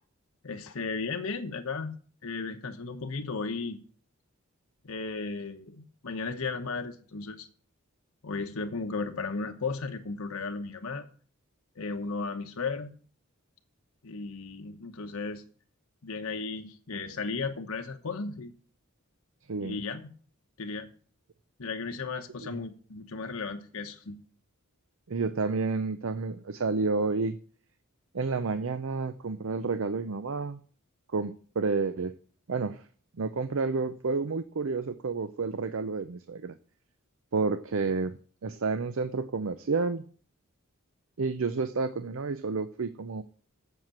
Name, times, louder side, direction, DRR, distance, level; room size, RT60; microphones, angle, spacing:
voice 1, 0.4-2.0 2.2-3.8 4.8-7.5 8.2-11.1 11.8-12.9 14.0-15.4 16.0-18.5 19.6-20.1 20.6-20.9 21.6-24.2, left 4 dB, 75° left, 1.0 m, -35 dB
voice 2, 19.5-19.8 22.4-22.6 25.1-27.4 28.1-30.6 31.1-32.1 32.5-32.8 33.2-36.5 37.3-40.0 41.2-43.2, right 4 dB, 65° right, 0.6 m, -30 dB
7.9 x 7.4 x 7.4 m
head